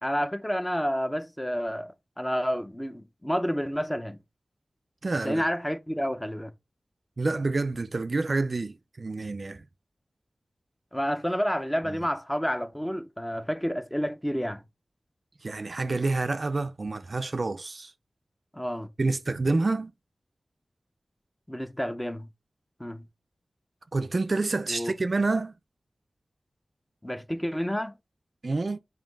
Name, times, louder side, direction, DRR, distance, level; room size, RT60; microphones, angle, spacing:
voice 1, 0.0-4.2 5.2-6.5 10.9-14.6 18.5-18.9 21.5-22.3 22.8-23.1 24.7-24.9 27.0-27.9, equal, 10° left, 0.6 m, -29 dB
voice 2, 5.0-5.4 7.2-9.6 11.8-12.0 15.4-17.9 19.0-19.9 23.9-25.5 28.4-28.8, right 3 dB, 50° right, 0.4 m, -28 dB
7.4 x 2.7 x 5.2 m
wide cardioid pair, 85°, 0 cm